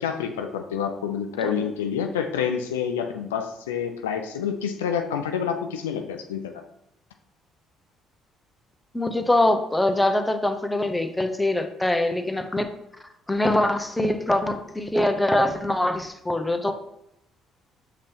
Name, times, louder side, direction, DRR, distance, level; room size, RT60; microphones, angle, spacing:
voice 1, 0.0-6.6, left 7 dB, 90° left, 6 dB, 0.3 m, -28 dB
voice 2, 8.9-12.7 13.3-16.7, left 1 dB, 10° left, 7 dB, 0.6 m, -23 dB
5.3 x 2.8 x 3.4 m, 0.80 s
hypercardioid pair, 55°, 0 cm